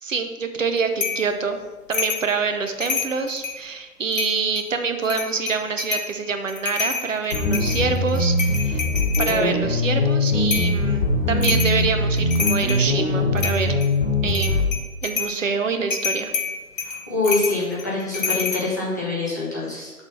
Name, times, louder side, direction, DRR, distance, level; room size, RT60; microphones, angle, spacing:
voice 1, 0.0-1.6 1.9-8.8 9.2-13.8 14.2-14.7 15.0-16.3, right 5 dB, 55° right, 7 dB, 0.9 m, -26 dB
sound 1, 1.0-1.3 1.9-2.3 2.7-3.6 4.1-4.7 5.1-6.1 6.5-9.4 10.5-10.8 11.4-11.8 12.2-12.9 13.4-13.9 14.3-15.4 15.9-18.6, left 4 dB, 55° left, 1.1 m, -28 dB
sound 2, 7.3-14.7, left 2 dB, 40° left, 1.4 m, -22 dB
voice 2, 16.8-19.9, left 3 dB, 10° left, -7 dB, 0.6 m, -25 dB
6.2 x 4.0 x 5.6 m, 1.3 s
figure-of-eight pair, 140°, 45 cm